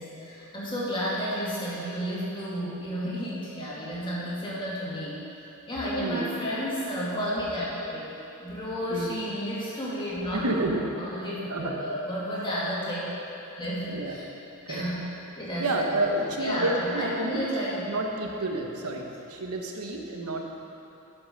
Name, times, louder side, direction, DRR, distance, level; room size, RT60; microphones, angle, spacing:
voice 1, 0.0-8.1 8.4-13.0 13.5-14.3 14.7-15.0 15.4-17.8 18.5-18.6, equal, 20° left, -8 dB, 2.4 m, -32 dB
voice 2, 6.0-6.3 8.9-9.1 10.3-10.8 11.5-11.7 13.9-14.2 14.7-14.9 15.6-17.4 17.9-20.4, right 2 dB, 85° right, 1 dB, 1.1 m, -29 dB
11.0 x 5.9 x 5.5 m, 2.8 s
head